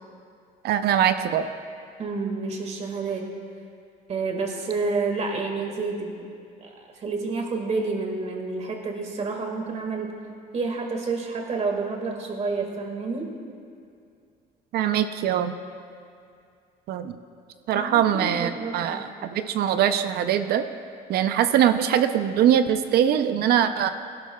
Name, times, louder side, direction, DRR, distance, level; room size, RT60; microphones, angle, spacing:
voice 1, 0.6-1.5 14.7-15.5 16.9-17.2 17.7-20.6 21.1-23.9, right 10 dB, 70° right, 9 dB, 0.6 m, -22 dB
voice 2, 2.0-3.3 4.1-6.3 6.6-10.1 10.5-13.3 17.7-19.1, right 4 dB, 40° right, 2 dB, 1.8 m, -29 dB
17.0 x 12.0 x 2.3 m, 2.3 s
cardioid pair, 110°, 17 cm